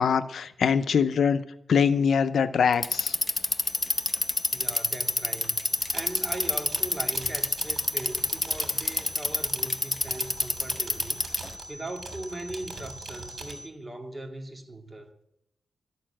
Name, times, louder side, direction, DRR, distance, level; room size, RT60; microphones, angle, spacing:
voice 1, 0.0-1.4 1.7-3.2, left 6 dB, 80° left, 0.6 m, -23 dB
Bicycle, 2.7-11.5, left 2 dB, 25° left, 0.7 m, -27 dB
sound 1, 3.7-13.7, equal, 5° right, 1.8 m, -45 dB
voice 2, 4.5-15.2, right 1 dB, 25° right, 2.1 m, -40 dB
sound 2, 5.7-13.5, right 4 dB, 70° right, 2.8 m, -43 dB
12.5 x 6.8 x 8.8 m
cardioid pair, 90°, 0 cm